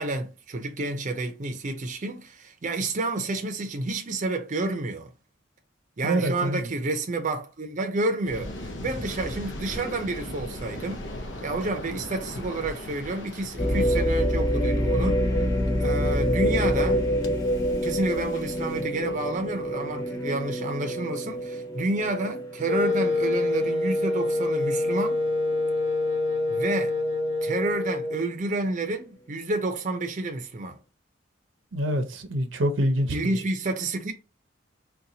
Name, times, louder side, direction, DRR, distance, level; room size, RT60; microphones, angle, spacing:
voice 1, 0.0-5.1 6.0-11.0 11.4-15.5 15.8-17.0 17.8-25.2 26.5-27.0 27.4-30.8 33.1-34.1, right 2 dB, 40° right, 0.5 m, -30 dB
voice 2, 6.0-6.7 31.7-33.1, right 1 dB, 90° right, 0.7 m, -25 dB
Waves surf, 8.2-18.8, left 1 dB, 75° left, 0.6 m, -39 dB
sound 1, 13.6-23.5 24.0-24.1 24.8-25.1, equal, 20° left, 0.7 m, -26 dB
Wind instrument woodwind instrument, 22.7-28.3, left 2 dB, 40° left, 1.5 m, -26 dB
4.0 x 2.2 x 2.7 m
head